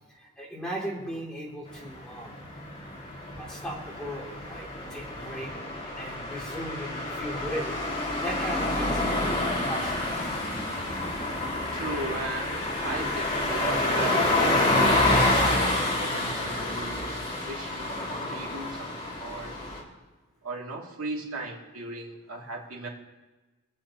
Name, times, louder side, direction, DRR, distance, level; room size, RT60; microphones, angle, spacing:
voice 1, 0.2-2.3 3.4-10.1, equal, 5° left, -4 dB, 2.6 m, -37 dB
sound 1, 1.7-19.8, left 2 dB, 25° left, 2.5 m, -28 dB
voice 2, 11.7-17.1 17.4-17.9 18.2-18.9 19.2-19.5 20.4-22.9, right 2 dB, 80° right, -2 dB, 2.4 m, -37 dB
26.5 x 8.9 x 2.9 m, 1.2 s
head